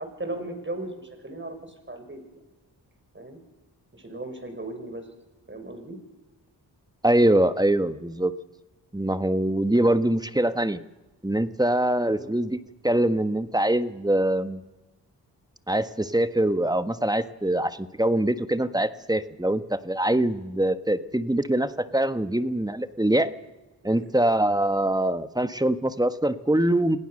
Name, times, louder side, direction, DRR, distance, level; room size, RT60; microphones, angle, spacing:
voice 1, 0.0-2.2 3.1-3.4 3.9-5.1 5.5-6.0 12.0-12.3 23.8-24.1, right 2 dB, 25° right, 6 dB, 6.1 m, -37 dB
voice 2, 7.0-8.3 8.9-10.8 11.2-14.6 15.7-23.3 23.8-27.0, right 1 dB, 10° right, 10 dB, 1.4 m, -23 dB
28.0 x 18.0 x 6.6 m, 1.1 s
cardioid pair, 45°, 43 cm